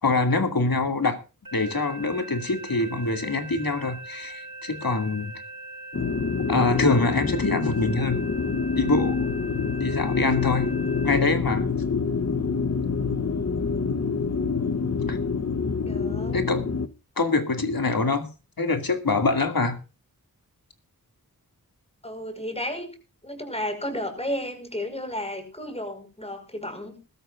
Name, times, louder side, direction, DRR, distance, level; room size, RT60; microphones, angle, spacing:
voice 1, 0.0-1.2 1.5-5.3 6.5-8.2 8.8-9.3 9.8-10.7 11.0-11.7 15.1-15.2 16.3-16.6 17.2-18.3 18.6-19.8, left 3 dB, 70° left, 6 dB, 2.4 m, -24 dB
sound 1, 1.4-11.1, right 1 dB, 65° right, 4.3 m, -41 dB
sound 2, 5.9-16.9, left 5 dB, 45° left, 1.0 m, -26 dB
voice 2, 15.8-16.5 22.0-23.0 23.2-27.0, left 1 dB, 15° left, 7 dB, 5.2 m, -33 dB
21.0 x 13.0 x 2.5 m, 0.32 s
wide cardioid pair, 60°, 37 cm